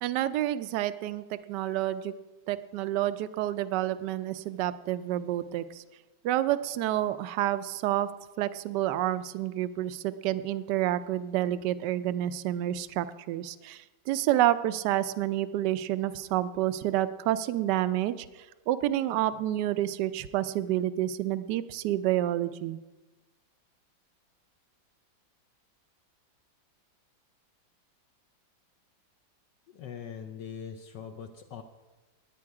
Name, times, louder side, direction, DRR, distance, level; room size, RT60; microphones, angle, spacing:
voice 1, 0.0-2.1 2.5-5.8 6.2-8.1 8.4-22.8, right 13 dB, 70° right, 14 dB, 1.1 m, -29 dB
voice 2, 29.7-31.6, left 7 dB, 70° left, 5 dB, 1.3 m, -42 dB
19.5 x 9.3 x 4.8 m, 1.2 s
omnidirectional pair, 2.1 m